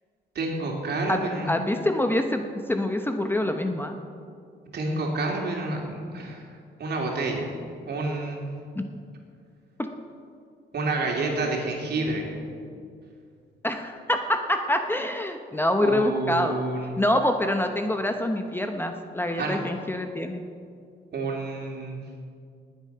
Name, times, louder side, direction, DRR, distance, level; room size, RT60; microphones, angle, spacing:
voice 1, 0.3-1.5 4.7-6.4 6.8-7.5 7.9-8.4 10.7-12.3 15.8-17.0 19.4-19.6 21.1-22.0, right 2 dB, 55° right, 0 dB, 3.2 m, -29 dB
voice 2, 1.5-4.0 8.8-8.9 13.6-16.6 17.0-20.4, left 1 dB, 10° left, 5 dB, 0.9 m, -26 dB
19.0 x 8.5 x 5.7 m, 2.3 s
cardioid pair, 90°, 20 cm